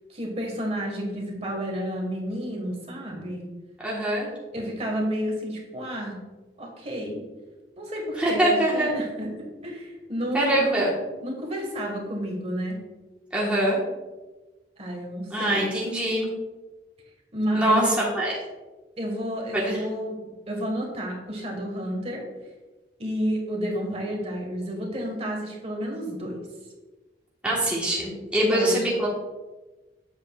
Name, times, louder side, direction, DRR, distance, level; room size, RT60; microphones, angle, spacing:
voice 1, 0.1-3.4 4.5-6.2 6.6-7.2 7.8-9.3 9.6-12.8 14.8-15.7 17.3-17.9 19.0-20.2 20.5-22.2 23.0-26.4 28.4-28.8, equal, 35° right, 0 dB, 1.5 m, -30 dB
voice 2, 3.8-4.3 8.2-8.9 10.3-10.9 13.3-13.8 15.3-16.3 17.5-18.4 19.5-19.8 27.4-29.1, right 1 dB, 5° right, -6 dB, 1.3 m, -23 dB
7.9 x 7.8 x 2.4 m, 1.2 s
head